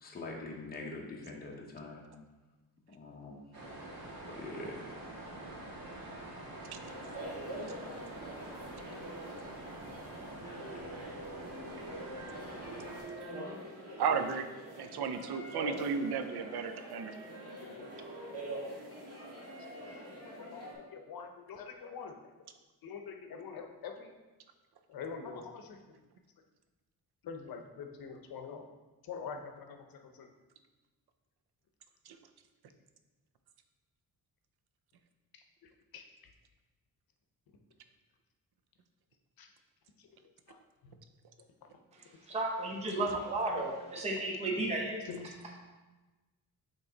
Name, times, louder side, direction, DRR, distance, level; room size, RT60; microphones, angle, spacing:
voice 1, 0.0-2.0 2.9-3.4 4.3-4.9 7.6-7.8, left 2 dB, 25° left, -1 dB, 0.9 m, -44 dB
sound 1, 3.5-13.0, right 1 dB, 65° right, 1.5 m, -46 dB
sound 2, 6.8-20.7, right 1 dB, 35° right, 1.7 m, -44 dB
voice 2, 14.0-14.5 14.8-17.1 32.1-32.2, right 6 dB, 80° right, 8 dB, 0.6 m, -34 dB
voice 3, 19.8-22.2 22.8-24.1 24.9-25.8 27.2-28.7 29.0-30.3 35.3-36.3 39.4-39.5 40.0-40.1 40.5-40.9 41.6-42.1 43.5-43.6 44.0-44.1 44.5-44.6 44.9-45.3, left 5 dB, 65° left, 5 dB, 0.8 m, -46 dB
voice 4, 41.9-45.0, right 2 dB, 15° right, -1 dB, 0.7 m, -34 dB
8.5 x 3.1 x 3.9 m, 1.2 s
wide cardioid pair, 170°, 38 cm